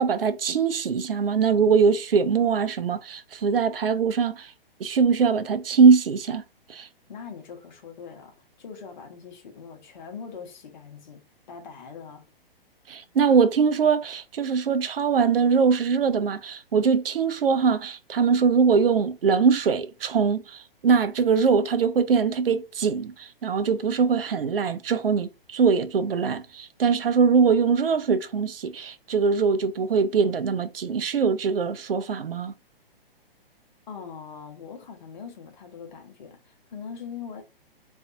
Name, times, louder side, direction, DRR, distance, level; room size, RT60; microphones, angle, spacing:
voice 1, 0.0-4.5 4.8-6.4 6.7-6.9 12.9-32.5, right 5 dB, 70° right, 0.4 m, -22 dB
voice 2, 7.1-12.3 33.9-37.4, left 6 dB, 50° left, 0.8 m, -42 dB
2.5 x 2.3 x 2.4 m
figure-of-eight pair, 120°, 30 cm